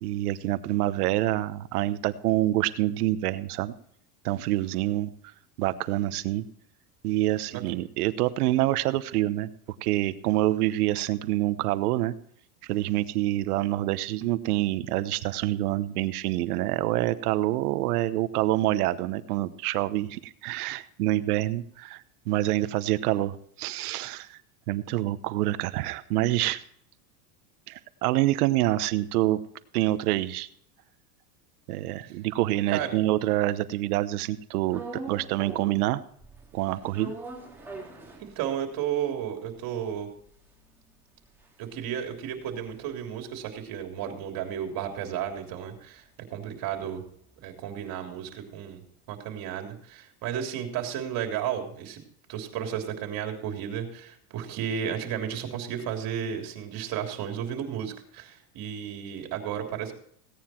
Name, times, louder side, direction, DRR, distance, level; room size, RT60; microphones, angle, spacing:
voice 1, 0.0-3.7 4.2-5.1 5.6-6.4 7.0-9.5 9.8-12.1 12.7-22.0 22.3-24.4 24.7-26.6 27.7-29.4 29.7-30.5 31.7-34.8 35.1-36.0 36.5-37.1, right 16 dB, 80° right, 14 dB, 1.1 m, -26 dB
sound 1, 34.7-35.9 36.2-38.8 39.2-39.3 39.5-44.0 44.3-48.3, right 2 dB, 5° right, 3.3 m, -44 dB
voice 2, 38.2-40.1 41.6-46.0 46.3-47.0 47.4-48.8 49.1-52.0 52.3-59.9, right 9 dB, 50° right, 3 dB, 3.4 m, -33 dB
17.0 x 9.6 x 4.4 m, 0.64 s
supercardioid pair, 125°, 45 cm